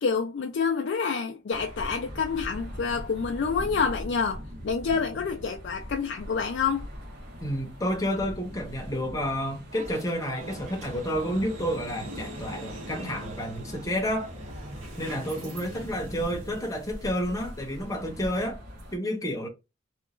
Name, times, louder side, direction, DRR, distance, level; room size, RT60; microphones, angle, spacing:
voice 1, 0.0-6.9, left 5 dB, 60° left, 0.4 m, -28 dB
sound 1, 1.5-19.0, equal, 55° right, 1.0 m, -43 dB
voice 2, 7.4-14.3 15.0-18.6 18.9-19.5, equal, 15° left, 0.7 m, -30 dB
sound 2, 9.7-15.1, right 3 dB, 35° right, 0.5 m, -48 dB
sound 3, 10.4-18.4, equal, 90° right, 1.1 m, -42 dB
2.9 x 2.3 x 2.4 m
head